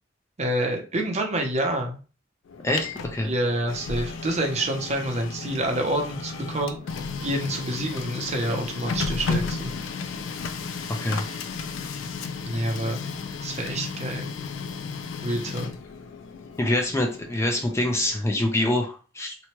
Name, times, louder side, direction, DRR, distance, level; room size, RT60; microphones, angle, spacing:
voice 1, 0.4-2.0 3.2-6.8 7.2-9.7 12.4-13.0 13.4-14.3 15.2-15.7, right 1 dB, 35° right, 3 dB, 0.6 m, -27 dB
Printer, 2.5-18.3, left 4 dB, 85° left, 0.4 m, -34 dB
voice 2, 2.6-3.3 11.0-11.2 16.6-19.3, left 1 dB, 15° left, 2 dB, 0.4 m, -25 dB
2.9 x 2.2 x 2.9 m, 0.35 s
head